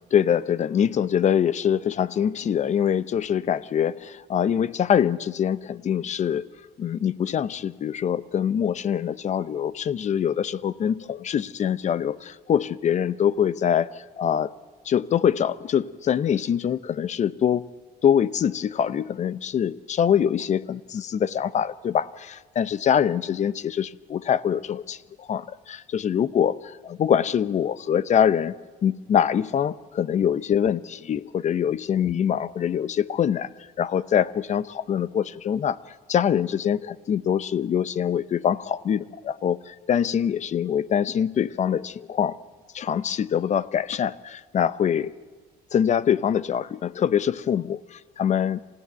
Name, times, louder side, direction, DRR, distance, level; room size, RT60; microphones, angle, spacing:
voice 1, 0.1-6.5 6.8-14.5 14.8-17.6 18.0-28.5 28.8-33.5 33.8-35.8 36.1-42.4 42.7-45.1 45.7-48.6, left 8 dB, 45° left, 17 dB, 0.7 m, -24 dB
26.5 x 15.5 x 9.3 m, 1.4 s
cardioid pair, 110°, 17 cm